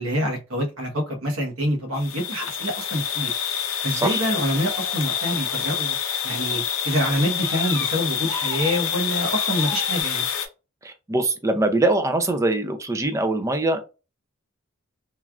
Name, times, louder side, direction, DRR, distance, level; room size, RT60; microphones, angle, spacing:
voice 1, 0.0-3.4 3.8-6.0 6.2-10.3, equal, 75° right, 1.1 m, -26 dB
sound 1, 2.0-10.5, left 8 dB, 75° left, 0.6 m, -27 dB
sound 2, 4.4-5.8 6.3-10.0, left 3 dB, 20° left, 0.8 m, -39 dB
voice 2, 10.8-13.8, right 2 dB, 15° right, 0.4 m, -23 dB
3.1 x 2.3 x 2.3 m
head